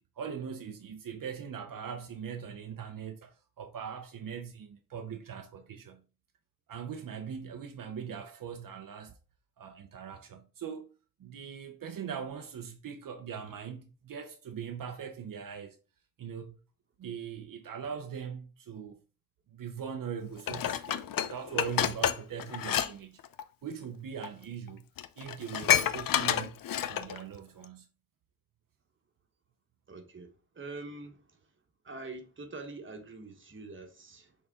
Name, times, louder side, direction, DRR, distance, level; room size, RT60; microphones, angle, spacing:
voice 1, 0.2-6.0 6.7-9.1 9.6-10.9 11.2-15.8 16.2-16.6 17.0-19.0 19.5-23.2 23.6-24.9 25.2-27.9, right 7 dB, 75° right, 0.7 m, -41 dB
Dishes pots and pans, 20.5-22.9 23.2-23.4 24.2-24.3 24.7-24.8 25.0-27.2 27.6-27.7, left 10 dB, 80° left, 0.5 m, -29 dB
voice 2, 29.9-31.4 31.8-34.4, right 3 dB, 35° right, 1.2 m, -45 dB
6.4 x 4.1 x 3.6 m
wide cardioid pair, 150°, 33 cm